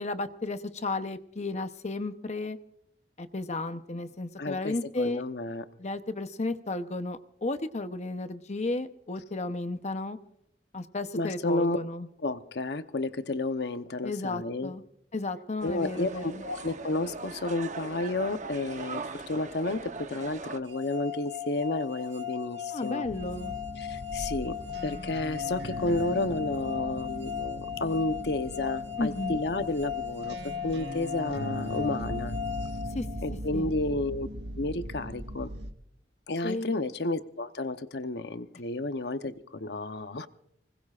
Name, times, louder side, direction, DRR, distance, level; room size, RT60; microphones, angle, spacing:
voice 1, 0.0-2.6 3.2-5.2 5.8-10.2 10.7-12.1 14.0-14.8 15.1-16.4 22.7-23.5 29.0-29.4 32.9-33.1 33.5-33.7 36.4-36.8, left 2 dB, 40° left, 9 dB, 0.8 m, -33 dB
voice 2, 4.4-5.6 11.1-11.8 12.2-14.7 15.6-23.1 23.8-24.6 24.8-32.3 33.2-34.3 34.6-35.5 36.3-40.3, left 2 dB, 65° left, 10 dB, 0.9 m, -31 dB
sound 1, 15.6-20.6, right 4 dB, 40° right, 0.9 m, -40 dB
sound 2, 20.7-33.6, left 9 dB, 90° right, 1.0 m, -37 dB
sound 3, 23.0-35.7, equal, 70° right, 1.6 m, -39 dB
25.0 x 20.0 x 2.5 m, 0.74 s
head